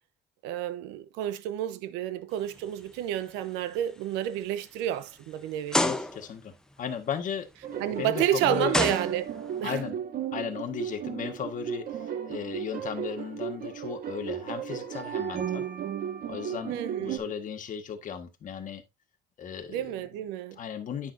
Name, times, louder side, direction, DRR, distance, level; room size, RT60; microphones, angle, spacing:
voice 1, 0.4-5.8 7.8-9.8 16.7-17.3 19.7-20.6, right 11 dB, 90° right, 0.7 m, -30 dB
sound 1, 2.5-2.9 3.4-3.5 4.2-4.3 5.7-6.4 7.9-8.0 8.7-9.6, left 1 dB, 5° left, 0.8 m, -28 dB
voice 2, 5.8-7.5 7.9-8.8 9.6-10.0 10.3-15.6 16.3-18.8 19.4-19.8 20.6-21.1, left 7 dB, 50° left, 1.5 m, -36 dB
sound 2, 7.6-17.2, right 9 dB, 55° right, 1.5 m, -35 dB
9.6 x 6.1 x 2.6 m
cardioid pair, 105°, 18 cm